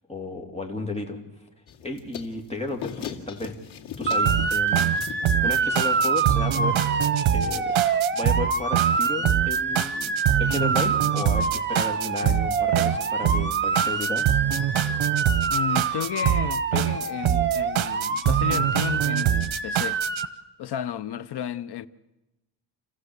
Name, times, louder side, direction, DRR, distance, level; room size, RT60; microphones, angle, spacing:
voice 1, 0.1-1.2 1.8-3.5 4.0-6.8 7.3-7.7 8.1-14.3 14.8-14.9, left 2 dB, 15° left, 3.0 m, -33 dB
sound 1, 1.7-6.4, left 9 dB, 85° left, 2.4 m, -40 dB
Motor vehicle (road) / Siren, 4.1-20.3, right 5 dB, 25° right, 1.2 m, -26 dB
sound 2, 4.3-20.3, right 11 dB, 85° right, 1.0 m, -25 dB
voice 2, 15.5-20.0 20.6-21.9, left 10 dB, 60° left, 0.9 m, -33 dB
28.5 x 15.0 x 8.1 m
cardioid pair, 140°, 46 cm